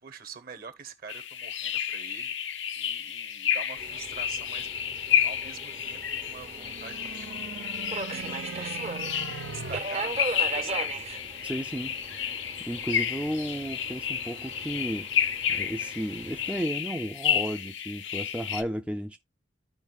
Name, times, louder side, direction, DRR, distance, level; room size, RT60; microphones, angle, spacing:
voice 1, 0.0-4.8 5.2-7.8 8.1-8.9 9.4-10.9, right 5 dB, 55° right, 1.1 m, -45 dB
sound 1, 1.1-18.6, left 9 dB, 85° left, 0.7 m, -31 dB
Subway metro underground, 3.8-16.6, right 3 dB, 35° right, 0.7 m, -39 dB
sound 2, 6.5-9.8, right 5 dB, 70° right, 0.7 m, -40 dB
voice 2, 11.4-12.3 12.6-15.1 15.5-19.2, equal, 5° right, 0.4 m, -33 dB
14.5 x 4.9 x 2.3 m
head